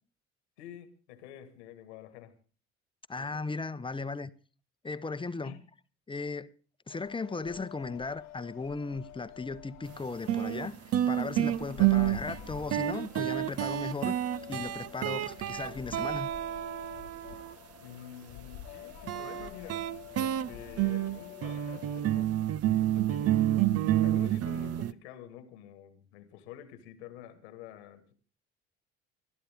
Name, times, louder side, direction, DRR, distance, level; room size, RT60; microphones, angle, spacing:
voice 1, 0.6-2.4 3.1-3.6 5.4-5.6 17.8-19.8 20.1-23.4 24.0-28.1, left 10 dB, 85° left, 1.9 m, -48 dB
voice 2, 3.1-4.3 4.8-5.6 6.1-6.5 6.9-14.1 14.5-16.3, left 3 dB, 15° left, 0.9 m, -37 dB
sound 1, 6.9-22.0, left 12 dB, 65° left, 1.3 m, -48 dB
sound 2, 9.8-9.9 10.3-17.5 19.1-24.9, right 13 dB, 50° right, 0.7 m, -29 dB
20.5 x 12.5 x 3.6 m
hypercardioid pair, 60°, 32 cm